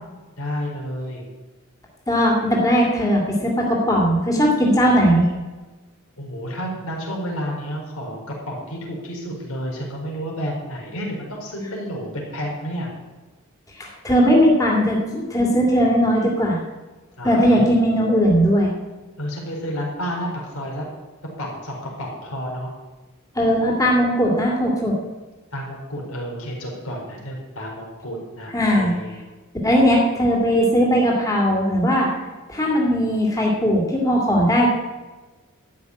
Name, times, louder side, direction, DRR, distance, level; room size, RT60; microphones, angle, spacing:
voice 1, 0.4-1.3 6.2-12.9 17.2-17.7 19.2-20.8 21.4-22.7 23.5-23.6 25.5-29.1, equal, 80° left, -2 dB, 4.4 m, -30 dB
voice 2, 2.1-5.3 13.8-16.6 17.2-18.7 23.3-24.9 28.5-28.9 29.6-32.1 32.5-34.7, equal, 15° left, -2 dB, 2.5 m, -18 dB
13.0 x 5.9 x 9.6 m, 1.2 s
head